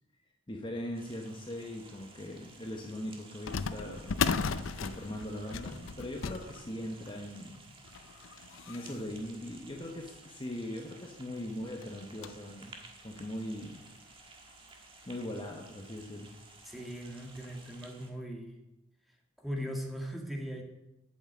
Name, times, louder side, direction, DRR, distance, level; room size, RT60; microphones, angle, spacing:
voice 1, 0.5-7.6 8.7-12.7 13.0-13.9 15.1-16.3, left 1 dB, 25° left, 1 dB, 1.1 m, -40 dB
sound 1, 0.9-18.1, right 3 dB, 25° right, 1.6 m, -55 dB
sound 2, 2.0-2.1 3.5-10.4 11.0-11.1 11.3-11.4 11.8-12.5 13.1-13.2 14.0-14.1 14.5-14.6 16.0-16.2 16.6-16.7 17.3-17.5, left 5 dB, 85° left, 0.6 m, -37 dB
voice 2, 16.7-18.6 19.4-20.6, equal, ahead, 0 dB, 1.8 m, -39 dB
8.7 x 7.4 x 7.8 m, 0.94 s
head